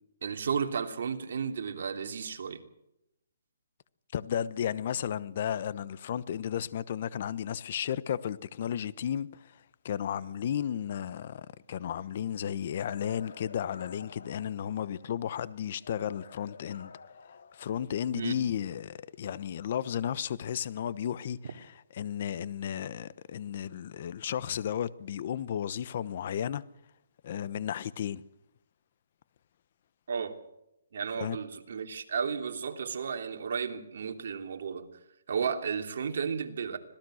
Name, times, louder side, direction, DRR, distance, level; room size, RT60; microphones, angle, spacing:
voice 1, 0.2-2.6 18.1-18.4 30.1-30.4 30.9-34.9 35.3-36.8, right 6 dB, 60° right, 3.0 m, -33 dB
voice 2, 4.1-16.9 17.5-26.6 27.2-28.2 31.2-31.4, left 9 dB, 45° left, 1.0 m, -34 dB
sound 1, 12.8-15.2 15.8-18.2, left 5 dB, 70° left, 2.5 m, -51 dB
26.0 x 18.0 x 6.5 m
hypercardioid pair, 160°, 0 cm